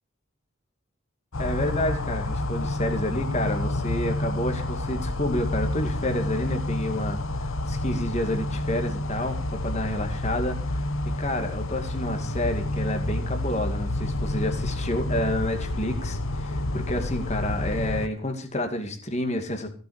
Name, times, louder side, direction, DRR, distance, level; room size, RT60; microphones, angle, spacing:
sound 1, 1.3-18.1, left 1 dB, 75° left, 1.1 m, -29 dB
voice 1, 1.4-10.9 11.2-19.7, left 1 dB, 30° left, 6 dB, 2.3 m, -29 dB
15.5 x 7.9 x 6.5 m, 0.41 s
head